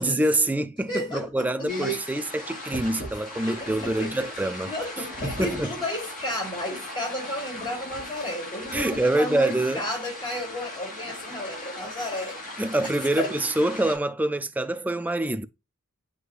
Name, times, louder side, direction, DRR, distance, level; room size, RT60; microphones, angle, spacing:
voice 1, 0.0-4.7 5.2-5.7 8.7-9.8 12.6-15.5, right 1 dB, 5° right, 0.3 m, -25 dB
voice 2, 0.9-2.2 3.4-4.3 4.6-12.4 12.7-13.4, left 1 dB, 20° left, 2.9 m, -33 dB
sound 1, 1.7-14.0, equal, 40° left, 4.3 m, -37 dB
8.0 x 4.9 x 2.5 m
head